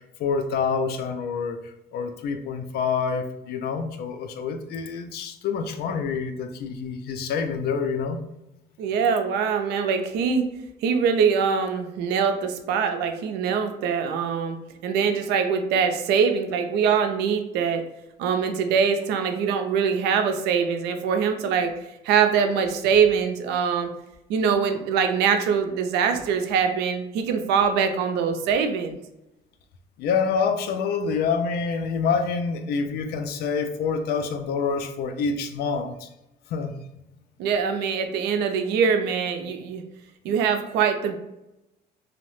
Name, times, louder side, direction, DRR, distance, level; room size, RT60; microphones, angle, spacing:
voice 1, 0.0-8.2 30.0-36.1 36.5-36.7, left 5 dB, 70° left, 7 dB, 0.4 m, -27 dB
voice 2, 8.8-10.5 10.8-14.6 14.8-17.8 18.2-21.7 22.0-23.9 24.3-29.0 37.4-39.8 40.2-41.1, right 6 dB, 85° right, 6 dB, 0.4 m, -23 dB
2.8 x 2.0 x 3.0 m, 0.90 s
cardioid pair, 110°, 17 cm